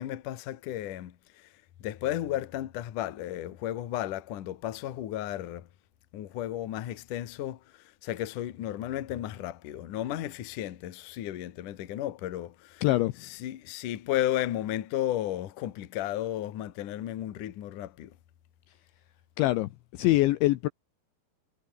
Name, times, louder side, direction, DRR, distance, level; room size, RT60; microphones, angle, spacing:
voice 1, 0.0-1.5 1.8-5.7 6.1-12.9 13.2-18.1, left 13 dB, 60° left, 2.2 m, -34 dB
voice 2, 12.8-13.1 19.4-20.7, left 17 dB, 75° left, 2.8 m, -24 dB
omnidirectional pair, 6.0 m